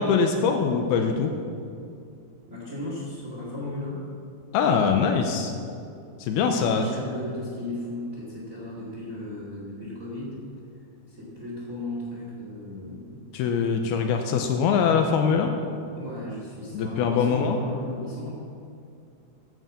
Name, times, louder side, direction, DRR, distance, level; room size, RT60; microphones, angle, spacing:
voice 1, 0.0-1.3 4.5-5.5 6.2-6.9 13.3-15.5 16.7-17.6, left 6 dB, 80° left, 4 dB, 2.5 m, -23 dB
voice 2, 2.5-4.0 6.4-10.3 11.2-13.3 16.0-18.4, left 1 dB, 25° right, -5 dB, 2.0 m, -35 dB
9.2 x 9.0 x 7.4 m, 2.5 s
omnidirectional pair, 4.8 m